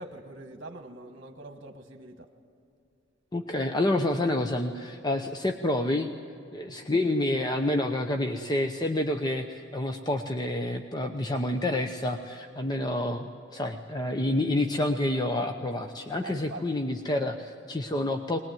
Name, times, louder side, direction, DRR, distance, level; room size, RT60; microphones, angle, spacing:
voice 1, 0.0-2.3 16.2-16.8, right 2 dB, 50° right, 5 dB, 1.4 m, -43 dB
voice 2, 3.3-6.1 6.5-18.4, left 1 dB, 20° left, 5 dB, 0.8 m, -28 dB
21.5 x 20.0 x 9.1 m, 2.6 s
head